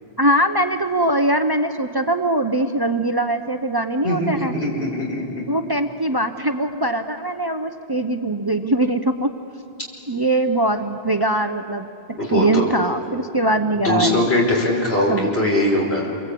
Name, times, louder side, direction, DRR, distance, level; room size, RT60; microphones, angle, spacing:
voice 1, 0.2-4.5 5.5-9.3 10.1-14.3 15.1-15.3, right 1 dB, 25° right, 8 dB, 0.7 m, -22 dB
voice 2, 4.0-5.2 12.2-12.7 13.8-16.1, left 1 dB, 75° left, -2 dB, 5.6 m, -21 dB
28.5 x 23.5 x 8.5 m, 3.0 s
omnidirectional pair, 1.1 m